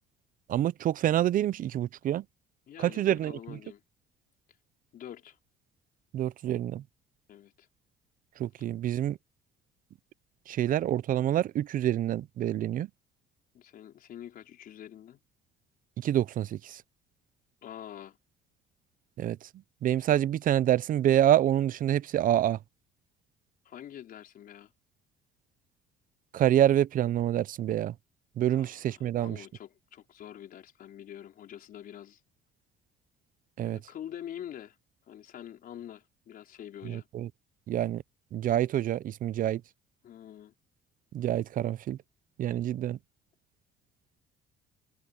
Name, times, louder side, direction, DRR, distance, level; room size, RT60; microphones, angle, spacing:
voice 1, 0.5-2.2 2.8-3.3 6.1-6.8 8.4-9.2 10.5-12.9 16.0-16.8 19.2-19.5 19.8-22.6 26.3-27.9 28.4-29.4 33.6-33.8 36.8-37.3 37.7-38.0 38.3-39.6 41.1-42.0 42.4-43.0, right 11 dB, 55° right, 0.6 m, -27 dB
voice 2, 2.7-3.8 4.9-5.4 7.3-7.7 13.5-15.2 17.6-18.2 23.6-24.7 28.5-32.2 33.6-34.8 35.1-37.1 40.0-40.5, left 10 dB, 60° left, 4.9 m, -45 dB
cardioid pair, 110°, 17 cm